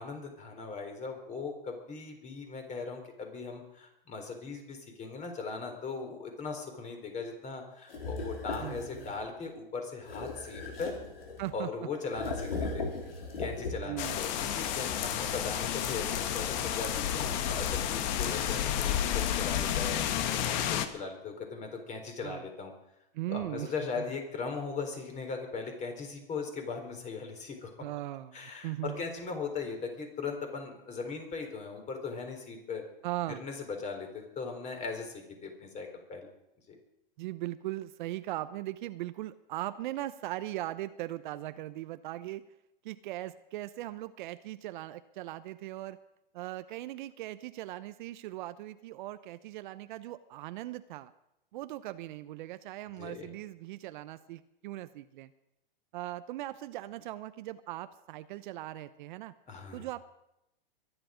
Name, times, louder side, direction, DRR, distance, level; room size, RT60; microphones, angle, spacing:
voice 1, 0.0-11.0 11.5-12.8 13.4-22.7 23.3-27.9 28.3-32.8 33.3-36.3 36.7-36.8 52.9-53.3 59.5-59.9, left 4 dB, 25° left, 4 dB, 4.0 m, -39 dB
sound 1, 7.9-9.2 10.0-11.6 12.1-14.1, left 3 dB, 85° left, 4.7 m, -37 dB
voice 2, 8.6-9.2 11.4-11.7 13.9-14.3 22.2-22.4 23.1-23.7 24.0-24.1 27.8-29.0 33.0-33.4 37.2-42.4 42.8-46.0 46.3-51.1 51.5-55.3 55.9-59.3 59.7-60.0, right 15 dB, 55° right, 13 dB, 0.8 m, -39 dB
sound 2, 14.0-20.9, left 10 dB, 50° left, 1.6 m, -31 dB
23.0 x 10.5 x 5.1 m, 0.85 s
hypercardioid pair, 120°, 29 cm